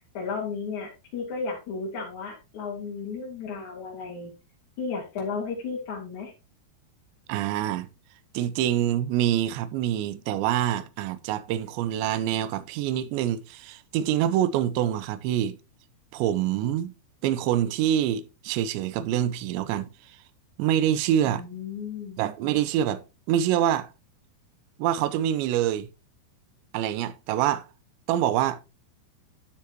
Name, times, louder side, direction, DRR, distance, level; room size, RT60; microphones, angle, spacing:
voice 1, 0.1-4.3 4.8-6.3 21.2-22.2, left 5 dB, 45° left, 4.3 m, -34 dB
voice 2, 7.3-7.9 8.3-15.6 16.1-16.9 17.2-20.2 20.6-21.4 22.2-23.9 24.8-25.9 26.7-27.7 28.1-28.6, right 11 dB, 80° right, 3.0 m, -26 dB
12.5 x 7.0 x 3.0 m
omnidirectional pair, 5.3 m